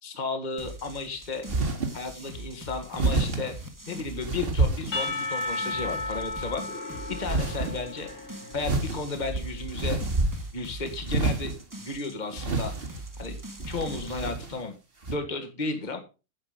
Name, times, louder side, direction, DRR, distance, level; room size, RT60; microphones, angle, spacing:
voice 1, 0.0-1.5 1.9-3.6 3.9-6.7 7.1-8.1 8.5-10.0 10.5-11.5 11.8-12.7 13.2-13.4 13.7-14.7 15.1-16.0, left 3 dB, 30° left, 6 dB, 1.9 m, -33 dB
sound 1, 0.6-14.3, right 1 dB, 15° right, 1.6 m, -42 dB
sound 2, 1.5-2.0 3.0-3.5 4.2-5.4 5.9-6.4 7.2-7.7 8.5-10.6 11.1-11.6 12.3-13.1 13.6-14.6 15.0-15.2, right 3 dB, 40° right, 2.2 m, -28 dB
Percussion / Church bell, 4.9-9.0, left 2 dB, 80° left, 3.9 m, -34 dB
10.5 x 8.4 x 5.1 m, 0.31 s
omnidirectional pair, 1.5 m